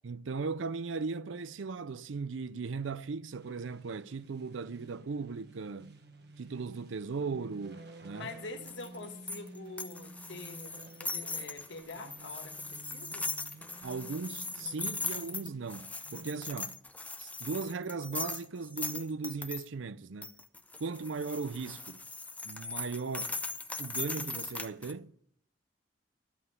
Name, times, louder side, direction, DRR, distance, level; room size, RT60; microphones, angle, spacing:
voice 1, 0.0-5.9 6.4-8.3 13.8-16.8 17.2-20.3 20.8-22.0 22.4-23.4 23.8-25.1, right 4 dB, 85° right, 0.5 m, -37 dB
sound 1, 3.3-16.4, right 2 dB, 60° right, 1.3 m, -52 dB
voice 2, 8.1-13.3, left 3 dB, 75° left, 1.6 m, -45 dB
sound 2, 8.6-19.6 20.2-24.9, left 3 dB, 10° left, 0.6 m, -39 dB
13.0 x 5.6 x 9.4 m
head